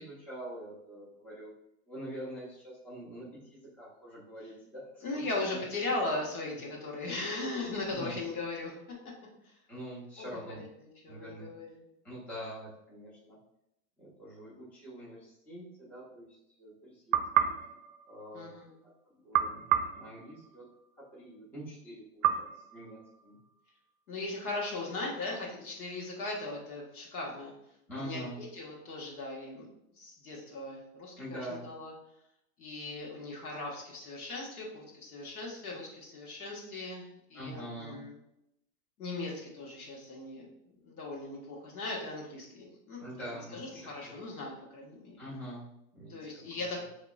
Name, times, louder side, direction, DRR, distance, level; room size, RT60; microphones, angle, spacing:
voice 1, 0.0-1.5 1.9-5.3 5.5-5.6 7.9-8.2 9.7-10.6 11.1-11.5 12.0-13.4 14.0-17.2 17.4-17.6 18.1-18.5 19.2-19.6 19.9-20.6 21.1-22.3 22.5-23.4 27.9-28.4 31.2-31.6 37.3-38.0 43.0-44.1 45.2-45.7 45.9-46.2 46.5-46.6, equal, 5° left, -8 dB, 0.4 m, -44 dB
voice 2, 5.0-9.0 9.4-9.5 10.2-10.6 11.0-11.9 18.3-18.8 24.1-27.5 27.9-28.2 28.5-29.7 30.0-31.9 32.6-38.1 39.0-40.5 40.8-43.0 43.5-45.2 46.1-46.8, left 2 dB, 90° left, -2 dB, 1.4 m, -38 dB
sound 1, 17.1-18.7 19.3-20.9 22.2-23.6, right 10 dB, 70° right, 0.5 m, -32 dB
3.9 x 2.9 x 2.3 m, 0.81 s
hypercardioid pair, 145°, 43 cm